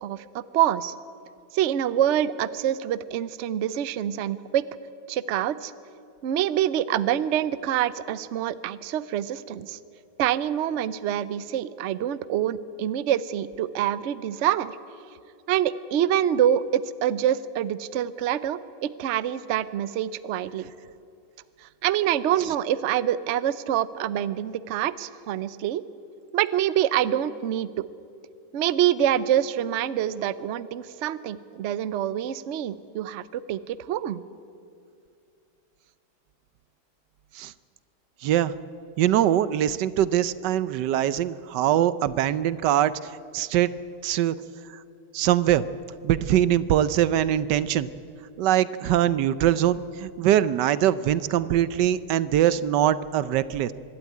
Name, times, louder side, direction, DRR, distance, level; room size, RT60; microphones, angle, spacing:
voice 1, 0.0-0.9 1.5-4.6 5.1-5.7 6.2-9.8 10.2-14.8 15.5-20.7 21.6-25.8 26.3-27.9 28.5-34.2, right 11 dB, 90° right, 15 dB, 0.6 m, -26 dB
voice 2, 38.2-38.5 39.0-43.7 44.0-44.3 45.1-45.6 46.0-47.9 48.4-53.7, right 11 dB, 70° right, 16 dB, 1.2 m, -22 dB
24.5 x 12.0 x 9.4 m, 2.4 s
omnidirectional pair, 2.0 m